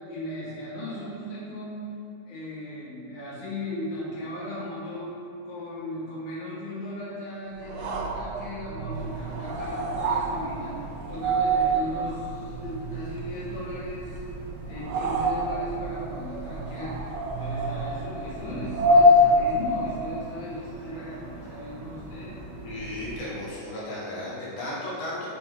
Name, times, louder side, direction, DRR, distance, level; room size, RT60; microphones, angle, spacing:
voice 1, 0.0-1.9 2.2-5.1 5.4-10.7 11.1-14.2 14.6-17.0 17.4-22.4, left 1 dB, 85° left, -9 dB, 3.0 m, -37 dB
sound 1, 7.6-20.2, equal, 80° right, 1.4 m, -26 dB
sound 2, 8.9-23.3, right 1 dB, 60° right, 1.1 m, -44 dB
voice 2, 22.6-25.3, left 1 dB, 55° left, -8 dB, 2.0 m, -34 dB
5.8 x 4.0 x 4.6 m, 2.6 s
omnidirectional pair, 3.3 m